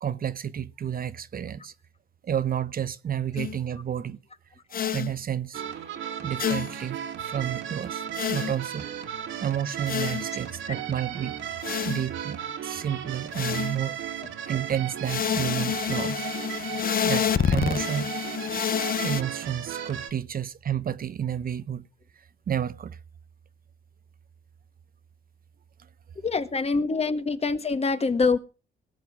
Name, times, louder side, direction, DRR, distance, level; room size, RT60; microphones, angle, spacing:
voice 1, 0.0-1.7 2.2-4.2 4.8-5.6 6.2-8.9 9.4-11.4 11.8-13.9 14.5-16.3 17.0-18.1 19.0-21.8 22.1-23.0, right 9 dB, 45° right, 0.9 m, -31 dB
sound 1, 3.4-3.6 4.7-5.1 6.4-6.8 8.1-8.6 9.9-10.3 11.6-12.1 13.3-13.8 15.0-19.2, left 8 dB, 45° left, 0.9 m, -28 dB
sound 2, 5.5-20.1, right 9 dB, 80° right, 2.5 m, -35 dB
voice 2, 26.2-28.4, left 4 dB, 30° left, 1.6 m, -25 dB
18.5 x 7.8 x 6.2 m
cardioid pair, 90°, 20 cm